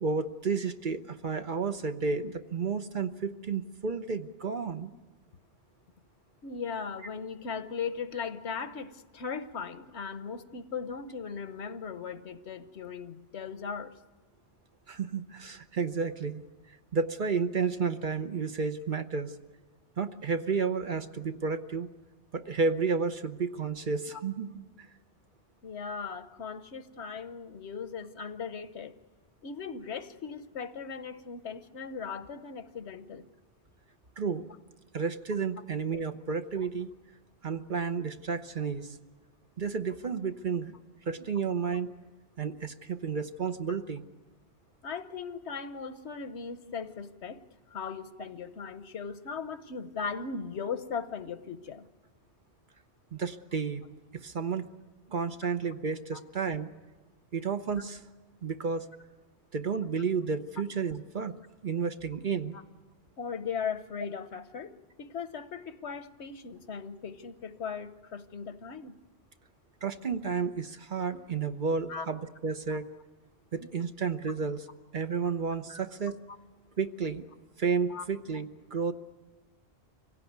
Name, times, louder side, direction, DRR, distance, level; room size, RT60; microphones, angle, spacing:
voice 1, 0.0-4.9 14.9-16.4 16.9-19.3 20.0-21.9 22.3-24.6 34.2-34.5 34.9-36.9 37.4-39.0 39.6-40.8 41.1-41.9 42.4-44.0 53.1-53.8 54.1-54.7 55.1-56.7 57.3-58.0 58.4-58.9 59.5-61.3 61.6-62.6 69.8-72.9 73.5-74.6 74.9-76.2 76.8-77.2 77.6-78.9, right 5 dB, 50° right, 9 dB, 1.0 m, -31 dB
voice 2, 6.4-13.9 24.1-24.2 25.6-28.9 29.4-33.2 43.7-43.8 44.8-47.4 47.7-51.9 56.1-56.2 62.5-62.6 63.2-64.7 65.0-69.0 71.9-72.1 72.7-72.8 75.7-75.8 77.9-78.0, left 6 dB, 75° left, 12 dB, 1.2 m, -38 dB
25.0 x 17.0 x 9.4 m, 1.2 s
omnidirectional pair, 1.1 m